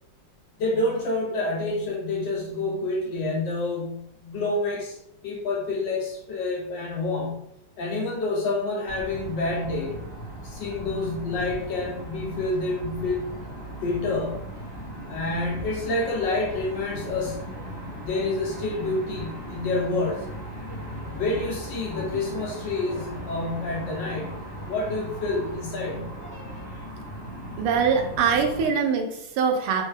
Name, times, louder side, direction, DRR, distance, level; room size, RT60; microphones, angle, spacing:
voice 1, 0.6-7.4 7.8-10.1 10.4-13.3 13.8-14.4 15.1-17.5 18.0-20.2 21.1-24.4 24.7-26.1, left 2 dB, 70° left, -1 dB, 1.1 m, -28 dB
sound 1, 8.8-28.7, equal, 50° left, 0.7 m, -38 dB
voice 2, 27.6-29.8, right 6 dB, 85° right, 4 dB, 1.5 m, -23 dB
4.3 x 2.2 x 3.2 m, 0.77 s
omnidirectional pair, 2.4 m